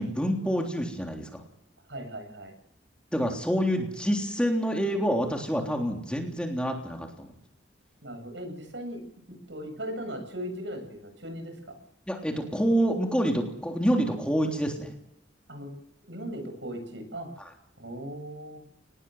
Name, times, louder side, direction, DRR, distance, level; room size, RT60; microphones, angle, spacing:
voice 1, 0.0-1.4 3.1-7.3 12.1-14.9 17.4-17.5, equal, 5° left, 2 dB, 3.4 m, -27 dB
voice 2, 1.9-2.5 8.0-9.0 9.3-11.6 15.5-15.7 16.1-17.3 17.8-18.6, equal, 75° right, 7 dB, 7.7 m, -38 dB
23.0 x 20.0 x 7.9 m, 0.76 s
head